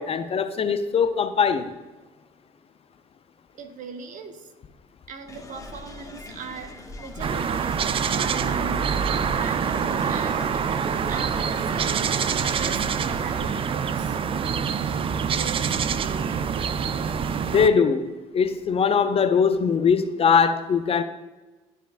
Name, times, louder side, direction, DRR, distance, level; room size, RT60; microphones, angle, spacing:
voice 1, 0.0-1.7 17.5-21.0, left 6 dB, 35° left, 0.6 m, -21 dB
voice 2, 3.5-4.5 5.1-7.8 8.0-8.9 9.2-12.1 12.5-14.4 15.2-16.6, right 6 dB, 50° right, 1.0 m, -39 dB
sound 1, 5.3-13.7, left 2 dB, 20° left, 1.2 m, -41 dB
sound 2, 7.2-17.7, right 7 dB, 35° right, 0.4 m, -25 dB
12.0 x 4.5 x 2.5 m
figure-of-eight pair, 55°, 17 cm